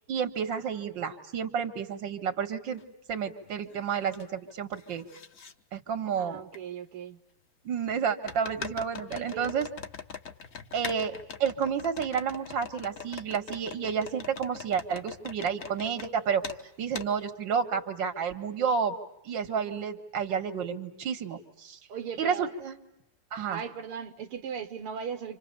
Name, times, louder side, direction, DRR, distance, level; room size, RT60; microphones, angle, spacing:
voice 1, 0.1-2.8 3.1-5.0 5.7-6.4 7.6-9.7 10.7-11.1 11.4-16.4 16.8-19.0 19.3-21.8 22.2-22.8 23.3-23.6, right 7 dB, 60° right, 2.4 m, -30 dB
sound 1, 2.8-2.9 3.4-4.2 4.5-5.5 6.5-6.6 8.3-16.1 16.4-16.6 16.9-17.1, left 6 dB, 45° left, 1.3 m, -42 dB
voice 2, 6.2-7.2 9.1-9.6 21.9-22.5 23.5-25.4, right 7 dB, 85° right, 2.1 m, -38 dB
30.0 x 26.5 x 6.9 m
omnidirectional pair, 2.4 m